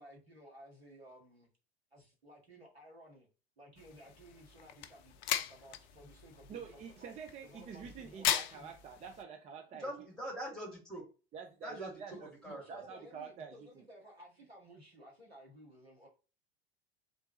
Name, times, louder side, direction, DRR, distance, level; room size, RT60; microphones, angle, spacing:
voice 1, 0.0-1.5 1.9-3.3 3.6-7.1 7.4-8.7 12.1-16.1, equal, 80° right, 1.7 m, -56 dB
sound 1, 3.8-9.2, left 10 dB, 50° left, 0.5 m, -39 dB
voice 2, 6.5-9.9 11.3-13.6, right 6 dB, 20° right, 0.5 m, -47 dB
voice 3, 9.7-11.1 11.6-12.6, equal, ahead, 2.1 m, -43 dB
3.7 x 3.5 x 2.9 m
figure-of-eight pair, 80°, 31 cm